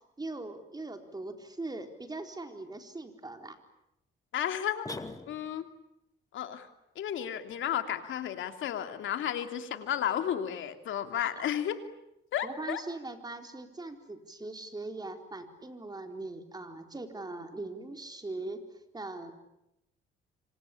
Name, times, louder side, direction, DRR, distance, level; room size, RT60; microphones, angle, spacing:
voice 1, 0.2-3.6 12.4-19.3, right 2 dB, 20° right, 6 dB, 4.2 m, -40 dB
voice 2, 4.3-4.9 5.3-5.7 6.3-6.7 6.9-11.8 12.3-12.8, left 10 dB, 75° left, 7 dB, 2.9 m, -33 dB
sound 1, 4.9-5.8, left 2 dB, 15° left, 2.5 m, -41 dB
26.5 x 25.5 x 8.6 m, 0.86 s
cardioid pair, 90°, 20 cm